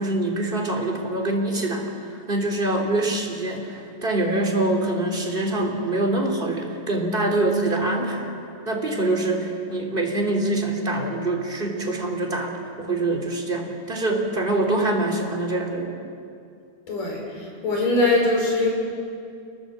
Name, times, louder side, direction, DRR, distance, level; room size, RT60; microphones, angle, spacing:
voice 1, 0.0-8.3 8.6-16.0, right 2 dB, 15° right, 1 dB, 2.5 m, -25 dB
voice 2, 16.9-18.7, left 2 dB, 50° left, -1 dB, 6.6 m, -22 dB
27.5 x 20.5 x 8.0 m, 2.4 s
omnidirectional pair, 4.9 m